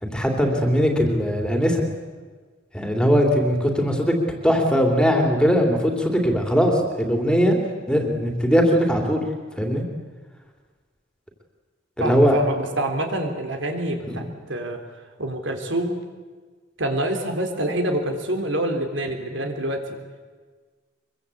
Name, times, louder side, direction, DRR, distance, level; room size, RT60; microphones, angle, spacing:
voice 1, 0.0-1.8 2.7-4.1 4.4-7.6 7.9-9.2 9.6-9.8 12.0-12.4 14.1-14.2, equal, 5° left, 2 dB, 3.1 m, -20 dB
voice 2, 12.0-14.8 15.2-15.9 16.8-20.0, right 1 dB, 70° right, 4 dB, 3.5 m, -26 dB
24.0 x 23.0 x 8.5 m, 1.5 s
head